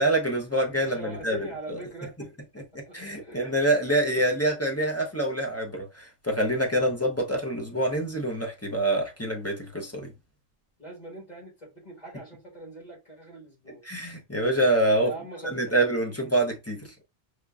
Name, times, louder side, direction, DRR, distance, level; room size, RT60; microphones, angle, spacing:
voice 1, 0.0-1.4 1.7-1.8 2.9-10.1 13.9-15.1 15.5-16.8, right 1 dB, 15° left, 0.6 m, -26 dB
voice 2, 0.6-3.5 4.2-4.3 10.8-13.9 15.0-15.8 16.1-16.3 16.8-17.0, right 1 dB, 35° left, 1.5 m, -43 dB
5.0 x 2.4 x 2.3 m
omnidirectional pair, 1.3 m